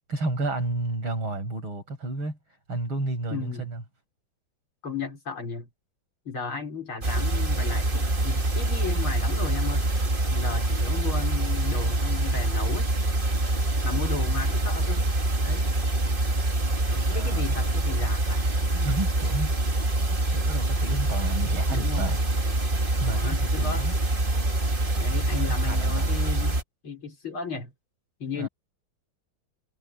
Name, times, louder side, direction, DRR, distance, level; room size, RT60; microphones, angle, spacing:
voice 1, 0.1-2.4 2.7-3.8 17.1-17.5 18.7-19.6 20.3-22.2 23.0-23.9 24.9-26.2 28.3-28.5, right 2 dB, 90° right, 7.5 m, -32 dB
voice 2, 3.3-3.7 4.8-5.7 6.3-9.9 10.3-12.9 13.8-15.1 15.4-15.8 16.9-18.5 21.7-22.2 23.1-23.9 25.0-27.7 28.2-28.5, left 4 dB, 90° left, 6.0 m, -35 dB
sound 1, 7.0-26.6, right 2 dB, 25° right, 2.0 m, -25 dB
omnidirectional pair, 2.2 m